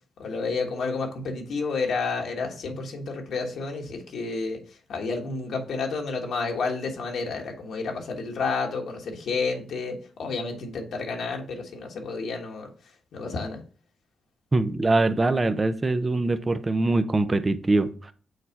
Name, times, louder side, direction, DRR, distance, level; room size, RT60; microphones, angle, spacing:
voice 1, 0.2-4.6 4.9-12.7 13.1-13.6, left 4 dB, 75° left, 1 dB, 1.5 m, -30 dB
voice 2, 14.5-18.1, right 2 dB, 25° right, 10 dB, 0.5 m, -23 dB
6.5 x 4.2 x 4.5 m, 0.39 s
cardioid pair, 115°, 0 cm